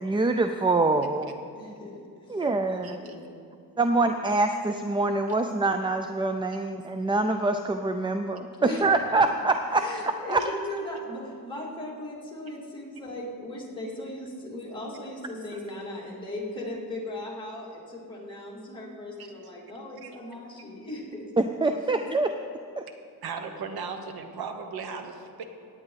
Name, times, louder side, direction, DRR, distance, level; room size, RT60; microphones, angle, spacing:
voice 1, 0.0-1.4 2.3-3.0 3.8-10.4 21.4-22.3 22.8-22.9, right 3 dB, 15° right, 7 dB, 0.3 m, -25 dB
voice 2, 1.5-3.3 8.6-8.8 9.7-21.2, left 1 dB, 15° left, -5 dB, 2.7 m, -38 dB
voice 3, 2.8-3.2 20.0-20.1 23.2-25.4, right 5 dB, 75° right, 6 dB, 1.1 m, -37 dB
17.5 x 9.2 x 3.9 m, 2.4 s
cardioid pair, 130°, 37 cm